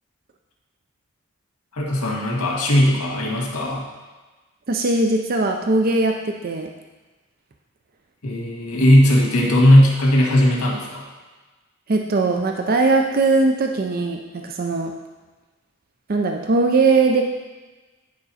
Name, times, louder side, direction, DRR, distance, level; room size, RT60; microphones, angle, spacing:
voice 1, 1.7-3.8 8.2-11.1, left 1 dB, 85° left, -2 dB, 1.7 m, -17 dB
voice 2, 4.7-6.7 11.9-14.9 16.1-17.2, right 3 dB, 40° right, 3 dB, 0.5 m, -20 dB
9.4 x 4.9 x 4.1 m, 1.3 s
head